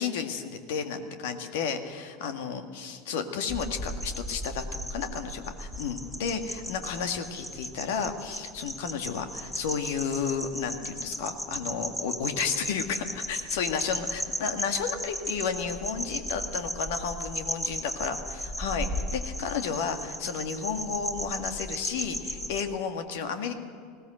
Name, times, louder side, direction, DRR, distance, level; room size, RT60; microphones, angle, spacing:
voice 1, 0.0-23.5, left 6 dB, 65° left, 7 dB, 1.9 m, -32 dB
sound 1, 3.5-22.6, equal, 5° left, 1.8 m, -36 dB
20.0 x 17.0 x 7.8 m, 2.1 s
hypercardioid pair, 80°, 0 cm